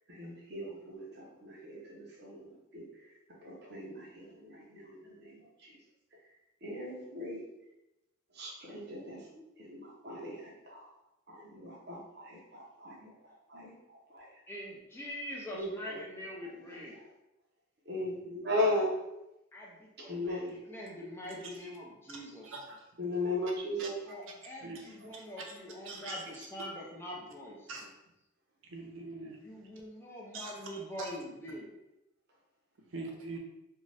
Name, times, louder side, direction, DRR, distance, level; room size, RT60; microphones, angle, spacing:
voice 1, 0.1-5.8 6.6-7.4 8.3-10.9 11.3-14.4 15.5-16.0 17.8-18.9 20.0-20.5 23.0-23.9, left 1 dB, 55° right, -3 dB, 0.8 m, -38 dB
voice 2, 14.5-16.9 19.5-22.6 24.1-27.7 29.4-31.7, equal, 10° left, -3 dB, 0.5 m, -44 dB
voice 3, 22.4-22.9 23.8-23.9 24.6-25.6 25.8-26.2 27.7-27.9 28.6-29.4 30.3-30.5 31.0-31.1 32.9-33.4, right 3 dB, 75° right, 1 dB, 0.5 m, -43 dB
2.6 x 2.4 x 3.2 m, 0.93 s
head